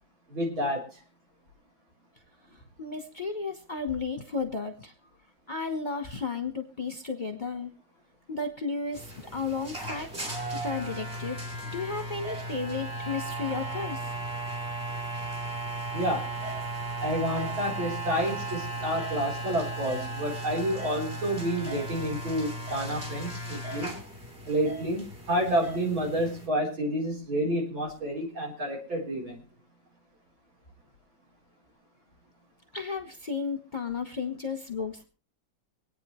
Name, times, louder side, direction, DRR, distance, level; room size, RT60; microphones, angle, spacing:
voice 1, 0.3-0.8 15.9-16.3 17.0-23.9 24.4-29.4, equal, 80° right, -1 dB, 4.8 m, -29 dB
voice 2, 2.8-4.9 5.5-7.7 8.3-10.1 10.5-14.1 32.7-35.0, left 4 dB, 25° left, 5 dB, 1.3 m, -33 dB
sound 1, 8.9-26.5, right 2 dB, 30° right, 3.7 m, -36 dB
25.5 x 9.3 x 3.2 m, 0.33 s
omnidirectional pair, 2.1 m